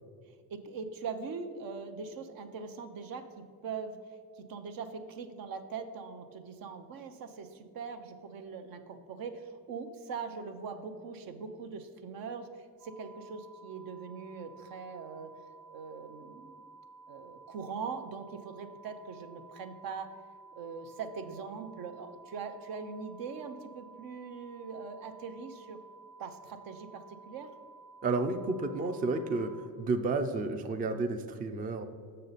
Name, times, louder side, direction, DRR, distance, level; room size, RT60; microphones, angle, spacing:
voice 1, 0.5-4.0 4.4-12.5 12.8-15.3 15.7-16.5 17.1-20.1 20.5-25.8 26.2-27.5, right 5 dB, 65° right, 8 dB, 0.8 m, -41 dB
sound 1, 12.8-29.7, right 4 dB, 85° right, 1.4 m, -54 dB
voice 2, 28.0-31.9, right 3 dB, 25° right, 7 dB, 0.4 m, -31 dB
6.6 x 6.6 x 4.0 m, 2.2 s
cardioid pair, 120°, 37 cm